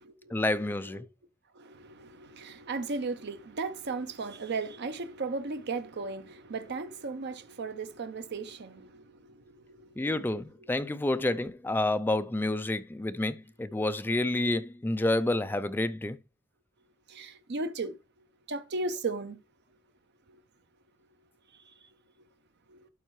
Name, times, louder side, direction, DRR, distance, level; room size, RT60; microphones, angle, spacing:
voice 1, 0.3-1.1 10.0-16.2, left 2 dB, 10° left, 0.4 m, -29 dB
voice 2, 1.6-10.1 17.1-18.0 18.5-19.4 22.7-22.9, right 3 dB, 55° right, 0.7 m, -36 dB
11.5 x 4.5 x 3.1 m
head